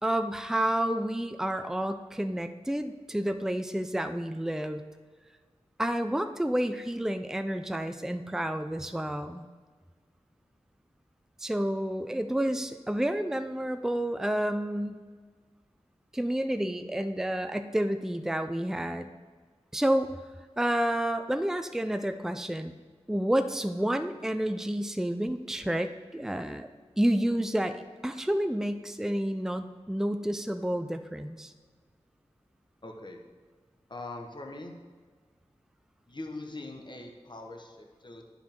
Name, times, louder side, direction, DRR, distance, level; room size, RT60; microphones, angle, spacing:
voice 1, 0.0-4.8 5.8-9.5 11.4-15.0 16.1-19.1 19.7-20.1 20.6-22.7 23.1-26.7 27.0-31.5, right 1 dB, 5° right, 8 dB, 0.5 m, -30 dB
voice 2, 32.8-33.2 33.9-34.8 36.1-38.3, left 2 dB, 40° left, 3 dB, 1.1 m, -42 dB
9.8 x 5.7 x 4.5 m, 1.5 s
wide cardioid pair, 45°, 12 cm